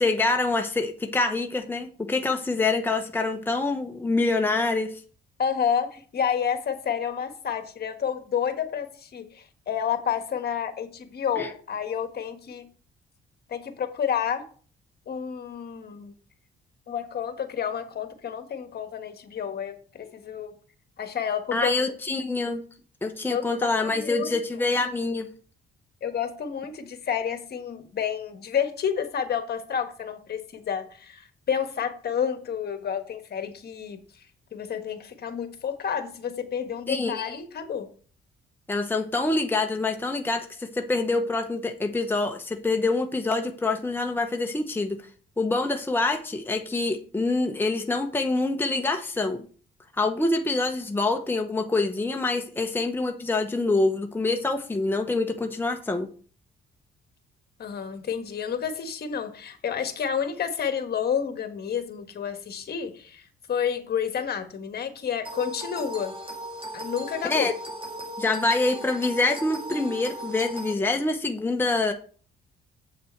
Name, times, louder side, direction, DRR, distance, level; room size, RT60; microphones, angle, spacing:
voice 1, 0.0-5.0 11.4-11.5 21.5-22.6 23.0-25.3 36.9-37.2 38.7-45.0 45.4-49.5 50.0-56.1 67.3-67.5 68.2-71.9, left 3 dB, 10° left, 4 dB, 0.9 m, -26 dB
voice 2, 5.4-12.7 13.5-14.4 15.1-16.1 16.9-20.5 21.0-21.7 23.3-24.4 26.0-34.0 34.5-37.9 57.6-66.1 66.7-67.5, left 8 dB, 55° left, 7 dB, 1.5 m, -30 dB
sound 1, 65.3-70.7, right 1 dB, 25° right, 2.1 m, -37 dB
7.8 x 6.7 x 4.5 m, 0.42 s
cardioid pair, 90°, 20 cm